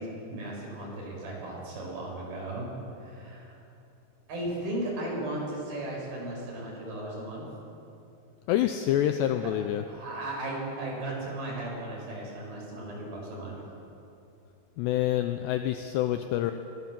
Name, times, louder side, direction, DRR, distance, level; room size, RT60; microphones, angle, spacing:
voice 1, 0.0-2.7 3.0-3.6 4.3-7.5 9.4-9.5 9.9-13.6, right 1 dB, 50° right, -3 dB, 7.4 m, -36 dB
voice 2, 8.5-9.8 14.8-16.5, left 12 dB, 80° left, 7 dB, 2.5 m, -27 dB
22.0 x 16.5 x 7.5 m, 2.8 s
omnidirectional pair, 5.5 m